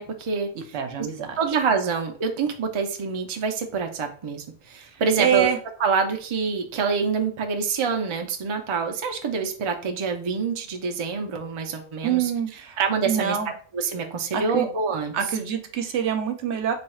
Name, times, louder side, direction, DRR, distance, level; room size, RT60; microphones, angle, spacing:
voice 1, 0.0-0.8 1.4-5.5 5.8-12.3 12.8-15.1, right 5 dB, 45° right, 4 dB, 0.4 m, -26 dB
voice 2, 0.5-1.4 5.2-5.6 12.0-12.8 13.1-13.5 14.3-14.7 15.1-16.7, right 8 dB, 80° right, 6 dB, 0.9 m, -25 dB
3.3 x 2.3 x 4.2 m, 0.42 s
omnidirectional pair, 1.2 m